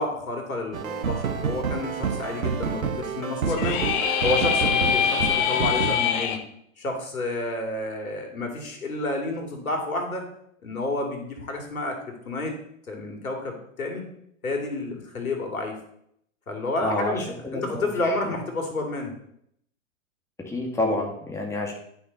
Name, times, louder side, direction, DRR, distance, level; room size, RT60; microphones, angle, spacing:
voice 1, 0.0-3.8 4.2-6.4 6.8-10.3 10.6-12.5 12.9-14.0 14.4-15.8 16.5-19.1, left 2 dB, 85° left, 3 dB, 2.7 m, -30 dB
sound 1, 0.7-6.0, right 6 dB, 85° right, 1.1 m, -28 dB
sound 2, 3.5-6.4, left 8 dB, 40° left, 1.2 m, -24 dB
voice 2, 16.8-17.1 17.4-17.9 20.5-21.7, left 1 dB, 5° left, -1 dB, 2.3 m, -27 dB
11.5 x 6.3 x 4.1 m, 0.71 s
hypercardioid pair, 110°, 41 cm